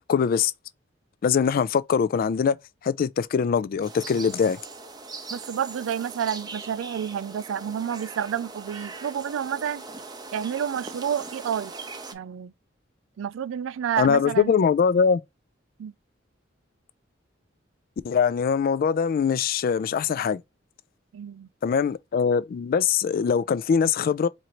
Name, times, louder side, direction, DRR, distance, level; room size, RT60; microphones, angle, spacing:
voice 1, 0.1-0.5 1.2-2.6 2.8-4.6 14.0-15.2 18.0-20.4 21.6-24.3, left 6 dB, 45° left, 0.3 m, -22 dB
sound 1, 3.8-12.1, right 3 dB, 20° right, 0.6 m, -40 dB
voice 2, 5.3-9.9 10.3-11.7 12.1-12.5 13.2-14.5 15.8-15.9 21.1-21.5, right 8 dB, 75° right, 0.3 m, -29 dB
4.3 x 2.6 x 2.9 m
head